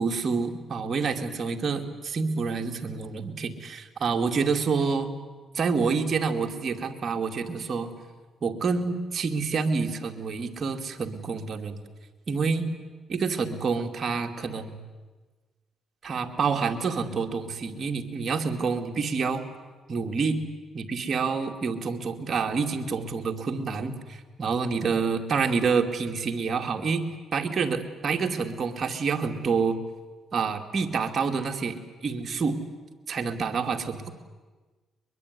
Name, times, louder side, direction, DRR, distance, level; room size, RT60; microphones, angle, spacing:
voice 1, 0.0-5.1 5.5-7.9 8.4-11.8 12.3-12.7 13.1-14.8 16.0-19.4 19.9-20.4 20.7-27.0 27.3-29.8 30.3-32.6 33.1-34.1, right 5 dB, 45° right, 4 dB, 2.5 m, -28 dB
23.0 x 22.0 x 9.7 m, 1.3 s
cardioid pair, 90°, 0 cm